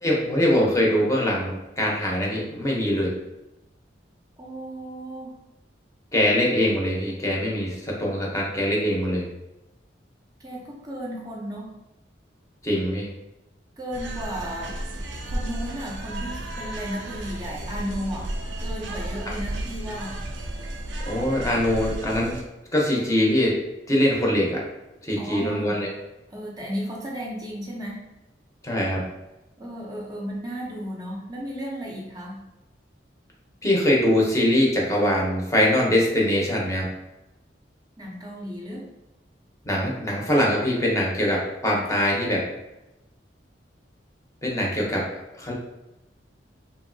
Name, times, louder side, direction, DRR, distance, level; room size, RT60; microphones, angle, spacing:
voice 1, 0.0-3.1 6.1-9.3 12.6-13.1 21.1-22.4 22.7-23.5 23.9-24.6 25.0-25.9 28.6-29.0 33.6-36.9 39.6-42.5 44.4-45.1 45.4-45.5, left 1 dB, 15° left, -3 dB, 0.6 m, -23 dB
voice 2, 4.4-5.3 10.4-11.7 13.8-14.7 15.3-18.3 18.6-20.2 25.2-25.9 26.3-28.0 29.6-32.4 38.0-38.8, equal, 20° right, -3 dB, 0.5 m, -34 dB
sound 1, 13.9-22.4, right 1 dB, 85° right, 0.5 m, -33 dB
2.9 x 2.6 x 2.5 m, 0.95 s
head